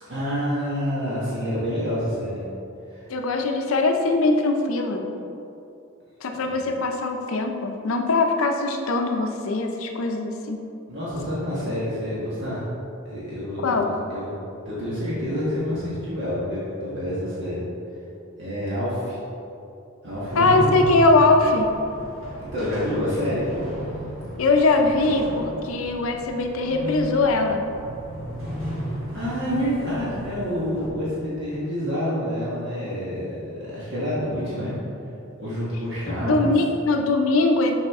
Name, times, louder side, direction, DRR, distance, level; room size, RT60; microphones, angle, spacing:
voice 1, 0.1-2.5 2.9-3.1 6.4-6.6 10.9-12.6 13.0-14.3 14.6-17.6 18.4-19.2 20.0-20.7 22.4-23.5 28.3-28.4 29.1-34.8 35.4-36.6, equal, 55° right, -9 dB, 1.4 m, -28 dB
voice 2, 3.1-5.1 6.2-10.6 13.6-13.9 20.4-21.7 24.4-27.6 36.1-37.7, left 3 dB, 70° left, 4 dB, 0.5 m, -21 dB
sound 1, 20.1-30.9, equal, 70° right, 1.5 m, -34 dB
6.4 x 5.0 x 3.6 m, 2.7 s
head